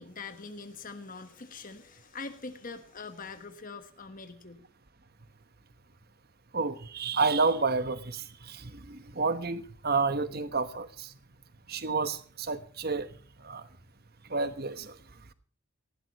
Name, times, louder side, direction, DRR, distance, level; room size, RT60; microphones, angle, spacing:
voice 1, 0.0-4.6, left 4 dB, 40° left, 8 dB, 1.3 m, -43 dB
voice 2, 6.5-11.1 11.7-13.1 13.4-13.7 14.3-15.0, right 4 dB, 45° right, 12 dB, 1.2 m, -30 dB
19.0 x 16.0 x 3.1 m, 0.43 s
head